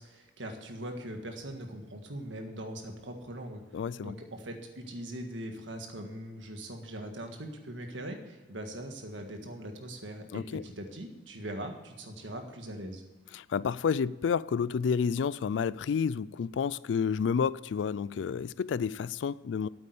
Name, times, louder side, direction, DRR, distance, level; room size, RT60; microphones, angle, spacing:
voice 1, 0.0-3.6 4.0-13.0, right 1 dB, 85° right, 1.7 m, -41 dB
voice 2, 3.7-4.1 10.3-10.6 13.3-19.7, left 6 dB, 75° left, 0.3 m, -30 dB
8.8 x 8.6 x 8.2 m
head